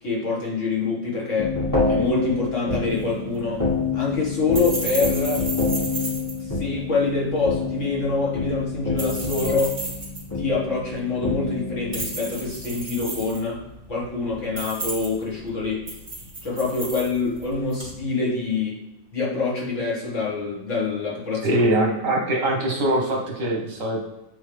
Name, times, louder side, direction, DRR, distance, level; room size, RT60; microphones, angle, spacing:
voice 1, 0.0-1.6 1.9-3.7 3.9-5.4 6.4-9.7 10.3-15.8 16.4-18.8 19.1-21.6, left 4 dB, 65° left, -5 dB, 2.1 m, -25 dB
sound 1, 1.4-13.0, left 4 dB, 15° left, 1.6 m, -28 dB
sound 2, 2.9-18.0, right 3 dB, 40° right, 2.3 m, -35 dB
voice 2, 21.4-24.0, right 1 dB, 75° right, 0 dB, 1.7 m, -22 dB
8.2 x 3.6 x 3.3 m, 0.97 s
omnidirectional pair, 1.4 m